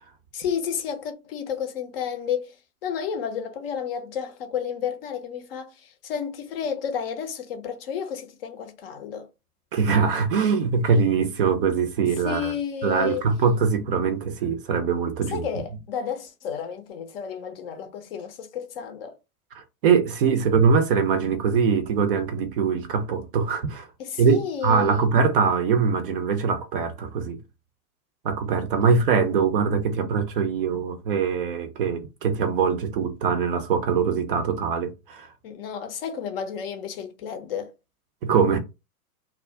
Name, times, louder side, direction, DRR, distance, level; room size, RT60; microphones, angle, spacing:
voice 1, 0.3-2.6 2.8-9.3 12.2-13.3 15.3-19.1 24.0-25.1 35.4-37.7, left 7 dB, 40° left, 0.5 m, -31 dB
voice 2, 9.7-12.5 12.8-15.5 19.6-23.9 24.2-27.4 28.2-35.3 38.2-38.6, right 6 dB, 40° right, 0.4 m, -22 dB
2.3 x 2.1 x 3.5 m
figure-of-eight pair, 100°, 45 cm